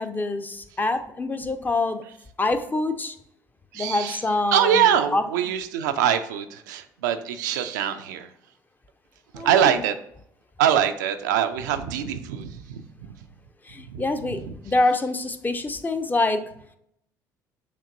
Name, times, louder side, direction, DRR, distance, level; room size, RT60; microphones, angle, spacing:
voice 1, 0.0-2.0 2.4-3.2 3.7-4.9 5.1-5.2 9.4-9.8 13.7-16.4, left 2 dB, 20° left, 8 dB, 0.5 m, -25 dB
voice 2, 3.7-4.2 4.5-8.3 9.3-10.0 10.6-12.8 13.9-14.0 14.3-14.4, right 9 dB, 80° right, 8 dB, 0.4 m, -23 dB
6.5 x 2.8 x 2.6 m, 0.73 s
hypercardioid pair, 60°, 10 cm